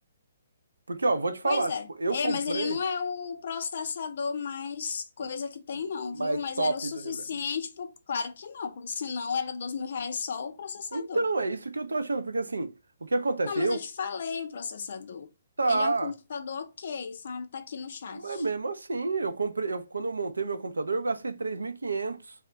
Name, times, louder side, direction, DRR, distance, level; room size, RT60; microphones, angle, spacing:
voice 1, 0.9-1.7 2.0-2.8 6.1-6.7 7.0-7.2 10.9-12.7 13.0-13.8 15.6-16.1 18.1-22.3, right 3 dB, 80° right, 0.4 m, -29 dB
voice 2, 1.4-11.3 13.4-15.3 15.7-18.4, left 6 dB, 55° left, 0.4 m, -34 dB
2.3 x 2.0 x 3.8 m
figure-of-eight pair, 130°, 0 cm